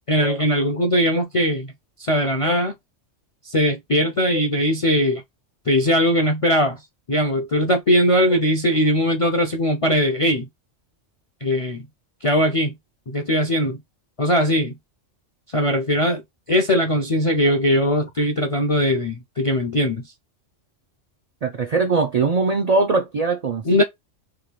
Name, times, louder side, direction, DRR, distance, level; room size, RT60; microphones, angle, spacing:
voice 1, 0.1-1.7 2.0-2.7 3.4-5.2 5.7-6.8 7.1-10.5 11.4-11.9 12.2-12.7 13.1-13.8 14.2-14.8 15.5-16.2 16.5-20.0 23.6-23.8, equal, 45° left, 0.4 m, -20 dB
voice 2, 21.4-23.8, right 4 dB, 70° right, 0.3 m, -21 dB
3.5 x 2.4 x 3.0 m
omnidirectional pair, 1.3 m